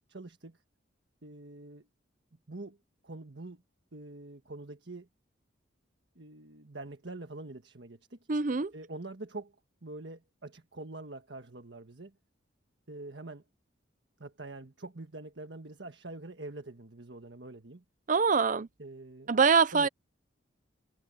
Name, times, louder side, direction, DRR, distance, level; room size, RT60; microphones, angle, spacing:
voice 1, 0.1-0.6 1.2-1.9 2.5-2.8 3.0-3.6 3.9-5.1 6.1-8.2 8.7-9.5 9.8-12.2 12.9-13.4 14.2-17.8 18.8-19.3 19.7-19.9, right 2 dB, 65° right, 1.6 m, -45 dB
voice 2, 8.3-8.7 18.1-18.7 19.3-19.9, right 5 dB, 40° right, 0.6 m, -24 dB
head